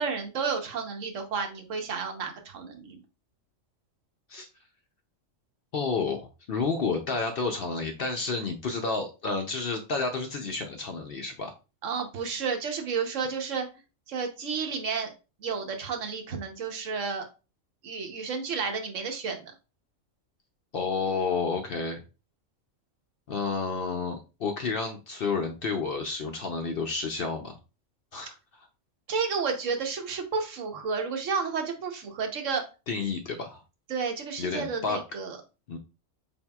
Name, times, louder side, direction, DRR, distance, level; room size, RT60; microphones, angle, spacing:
voice 1, 0.0-3.0 11.8-13.7 14.1-15.1 15.4-17.2 17.8-19.5 29.1-32.6 33.9-35.4, right 5 dB, 75° right, 4 dB, 1.2 m, -31 dB
voice 2, 5.7-11.5 20.7-22.0 23.3-27.6 28.1-28.3 32.9-33.6 34.4-35.0 35.7-35.8, left 4 dB, 60° left, 4 dB, 0.6 m, -30 dB
4.4 x 3.5 x 2.2 m, 0.30 s
omnidirectional pair, 1.3 m